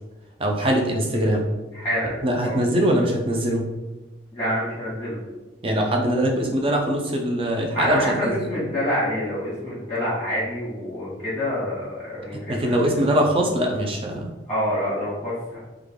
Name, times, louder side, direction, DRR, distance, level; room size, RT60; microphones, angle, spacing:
voice 1, 0.4-1.4 2.2-3.7 5.6-8.5 12.5-14.2, right 1 dB, 30° right, 1 dB, 0.5 m, -22 dB
voice 2, 1.7-2.1 2.4-2.6 4.3-5.2 7.7-13.1 14.5-15.6, equal, 10° left, -10 dB, 1.2 m, -27 dB
3.3 x 2.3 x 3.5 m, 1.1 s
head